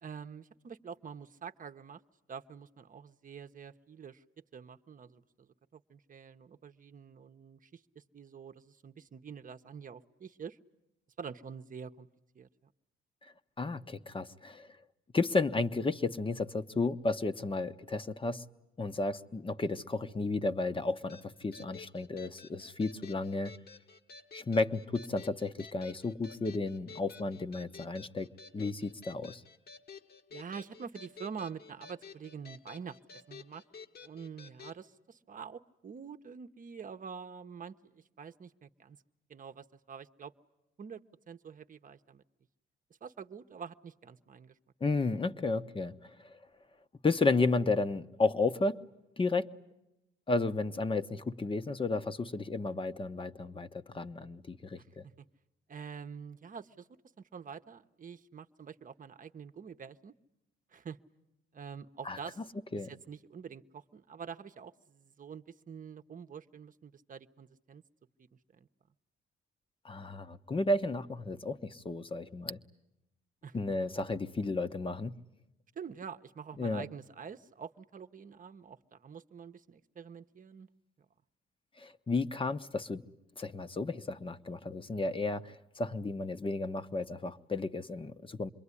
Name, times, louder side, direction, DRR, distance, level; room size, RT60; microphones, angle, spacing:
voice 1, 0.0-2.0 2.3-4.2 4.5-10.6 11.2-12.1 12.3-12.5 30.3-33.6 34.0-39.0 39.3-40.3 40.8-42.2 43.0-44.6 54.8-55.3 55.7-56.9 57.3-60.1 60.7-61.0 61.5-62.4 62.9-67.8 68.5-68.7 73.4-73.6 75.8-80.7, right 6 dB, 45° right, 0.9 m, -46 dB
voice 2, 13.6-14.7 15.1-18.4 18.8-23.5 24.3-28.3 28.5-29.4 44.8-46.1 47.0-48.8 49.2-49.5 50.3-53.7 53.9-55.0 62.0-62.2 62.7-62.9 69.8-72.6 73.5-75.2 76.6-76.8 81.8-83.0 83.4-88.5, left 3 dB, 25° left, 1.1 m, -33 dB
sound 1, 21.1-34.8, left 5 dB, 50° left, 1.7 m, -52 dB
27.0 x 22.5 x 9.8 m
cardioid pair, 90°, 20 cm